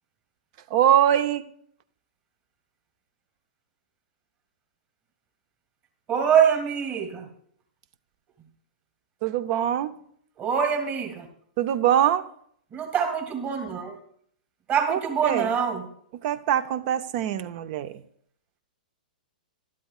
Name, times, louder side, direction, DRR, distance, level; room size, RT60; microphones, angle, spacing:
voice 1, 0.7-1.4 9.2-9.9 11.6-12.2 14.9-15.5 16.2-17.9, right 10 dB, 50° right, 13 dB, 0.7 m, -23 dB
voice 2, 6.1-7.3 10.4-11.3 12.7-13.9 14.7-15.8, right 7 dB, 30° right, 3 dB, 2.1 m, -24 dB
12.0 x 12.0 x 2.4 m, 0.65 s
hypercardioid pair, 120°, 5 cm